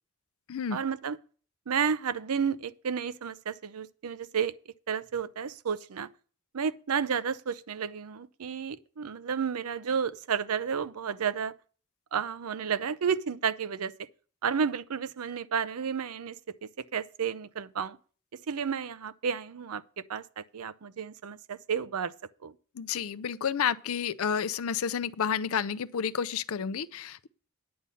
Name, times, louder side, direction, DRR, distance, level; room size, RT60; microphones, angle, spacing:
voice 1, 0.7-1.2 1.7-4.5 4.9-6.1 6.5-11.5 12.1-13.9 14.4-16.4 16.9-18.0 18.5-19.8 20.1-22.1 22.4-22.5, right 7 dB, 85° right, 0.6 m, -31 dB
voice 2, 22.8-27.3, left 7 dB, 70° left, 0.5 m, -30 dB
9.5 x 5.6 x 8.3 m
head